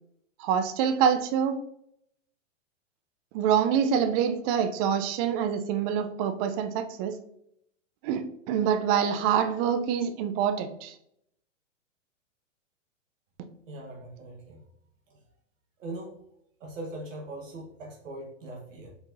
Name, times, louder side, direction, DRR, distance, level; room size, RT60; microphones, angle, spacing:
voice 1, 0.4-1.6 3.3-7.2 8.0-11.0, right 8 dB, 30° right, 9 dB, 0.4 m, -26 dB
voice 2, 13.7-14.6 15.1-15.2 15.8-16.2 16.6-18.9, right 1 dB, 75° right, 0 dB, 1.2 m, -40 dB
4.8 x 4.2 x 2.5 m, 0.74 s
hypercardioid pair, 120°, 38 cm